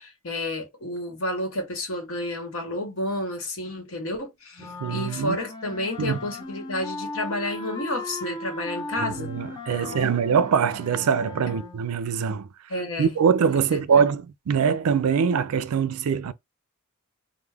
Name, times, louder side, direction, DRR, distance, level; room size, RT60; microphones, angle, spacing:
voice 1, 0.0-9.3 9.7-10.2 11.5-11.6 12.7-13.1 13.5-14.0, left 1 dB, 65° left, 1.1 m, -31 dB
sound 1, 4.6-11.9, left 2 dB, 20° left, 0.5 m, -37 dB
voice 2, 4.8-5.4 6.0-6.2 9.0-12.5 13.0-16.3, right 6 dB, 85° right, 0.4 m, -23 dB
2.3 x 2.1 x 3.2 m
head